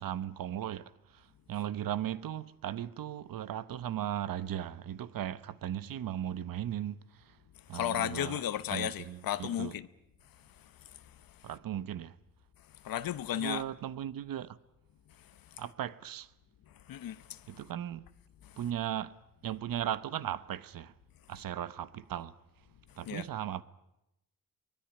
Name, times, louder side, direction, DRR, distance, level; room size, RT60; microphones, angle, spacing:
voice 1, 0.0-7.3 7.7-8.4 8.7-9.7 11.4-12.1 13.3-14.6 15.6-16.3 17.5-18.0 18.6-19.2 19.4-20.9 21.3-22.3 23.0-23.6, right 11 dB, 80° right, 1.0 m, -37 dB
voice 2, 7.7-9.9 10.6-11.0 12.8-13.6 15.2-15.3 16.9-17.6 18.4-18.6 23.1-23.3, left 11 dB, 90° left, 0.9 m, -35 dB
23.5 x 20.0 x 10.0 m
wide cardioid pair, 140°, 34 cm